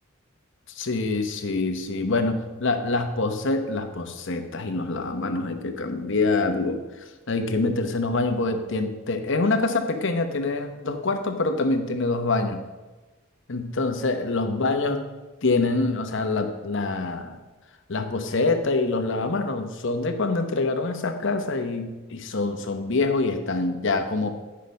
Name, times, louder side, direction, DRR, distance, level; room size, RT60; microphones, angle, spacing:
voice 1, 0.8-6.8 7.3-12.6 13.5-15.1 15.4-17.4 17.9-24.3, left 3 dB, 65° left, 6 dB, 0.9 m, -25 dB
10.0 x 5.7 x 5.2 m, 1.2 s
head